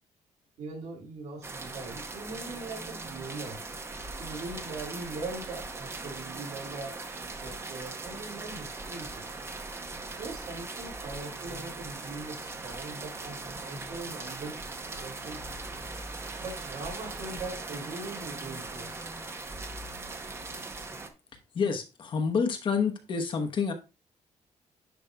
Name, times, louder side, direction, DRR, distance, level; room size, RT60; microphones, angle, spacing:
voice 1, 0.6-3.6 4.2-7.0 7.3-9.3 10.2-14.6 15.0-15.4 16.4-19.1, right 3 dB, 70° right, 4.3 m, -41 dB
sound 1, 1.4-21.1, right 3 dB, 20° right, 0.8 m, -40 dB
voice 2, 21.5-23.7, left 5 dB, 40° left, 0.9 m, -28 dB
10.5 x 5.2 x 2.3 m
cardioid pair, 170°, 13 cm